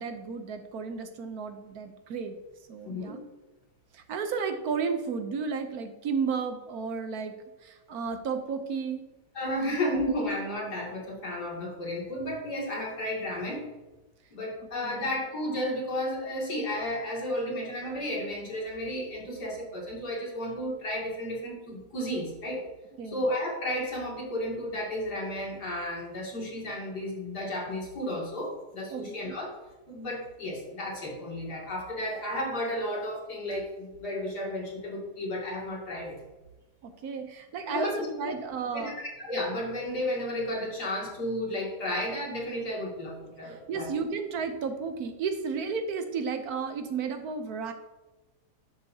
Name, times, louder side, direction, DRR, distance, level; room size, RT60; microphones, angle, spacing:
voice 1, 0.0-2.4 2.7-3.2 3.9-7.3 7.6-9.0 9.6-10.0 14.8-15.1 23.0-23.2 28.9-29.1 36.8-39.0 43.4-47.7, right 5 dB, 65° right, 7 dB, 1.2 m, -33 dB
voice 2, 9.3-13.6 14.3-22.6 23.0-29.5 29.9-36.2 37.7-38.1 38.7-43.9, left 1 dB, 70° left, -3 dB, 3.0 m, -33 dB
11.0 x 7.5 x 2.8 m, 1.1 s
omnidirectional pair, 1.8 m